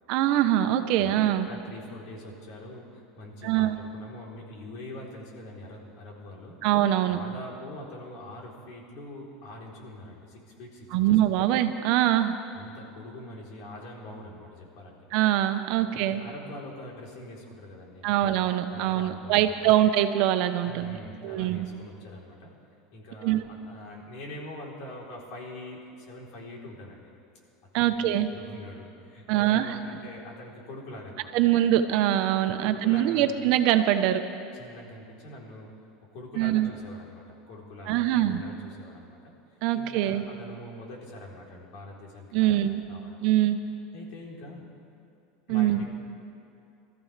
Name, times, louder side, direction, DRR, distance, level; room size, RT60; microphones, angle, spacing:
voice 1, 0.1-1.5 3.4-3.8 6.6-7.2 10.9-12.3 15.1-16.2 18.0-21.0 21.2-21.7 23.2-23.4 27.7-28.3 29.3-29.8 31.3-34.2 36.4-36.7 37.9-38.4 39.6-40.2 42.3-42.8 43.2-43.6 45.5-45.8, right 12 dB, 65° right, 9 dB, 0.9 m, -23 dB
voice 2, 1.4-6.6 7.1-11.4 12.5-15.0 15.8-19.8 20.6-22.5 22.9-27.1 27.7-31.5 32.6-33.4 34.5-35.7 36.1-39.3 39.7-42.6 42.9-43.3 43.9-44.6 45.5-45.9, left 1 dB, 65° left, -2 dB, 3.7 m, -44 dB
24.5 x 14.0 x 3.4 m, 2.7 s
supercardioid pair, 125°, 0 cm